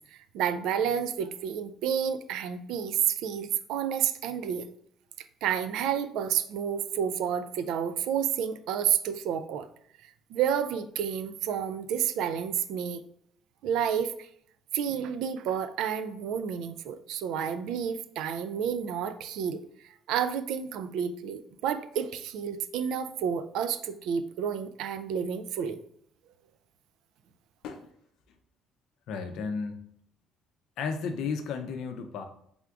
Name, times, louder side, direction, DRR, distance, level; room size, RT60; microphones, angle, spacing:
voice 1, 0.1-4.7 5.4-9.7 10.0-13.0 13.6-14.3 14.7-25.8, right 8 dB, 80° right, 11 dB, 0.3 m, -30 dB
voice 2, 29.1-29.9 30.8-32.3, left 5 dB, 70° left, 6 dB, 0.5 m, -33 dB
3.5 x 2.4 x 4.5 m, 0.67 s
cardioid pair, 140°, 0 cm